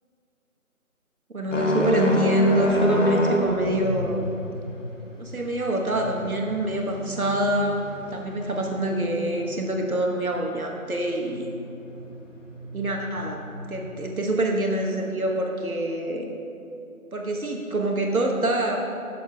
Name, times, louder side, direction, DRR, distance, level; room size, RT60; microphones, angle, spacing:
voice 1, 1.3-4.3 5.2-7.8 8.1-11.5 12.7-13.4 13.7-16.3 17.1-18.8, right 1 dB, 70° right, 1 dB, 1.3 m, -25 dB
sound 1, 1.5-14.2, left 1 dB, 55° left, 1.6 m, -30 dB
15.0 x 6.7 x 3.4 m, 2.8 s
figure-of-eight pair, 165°, 44 cm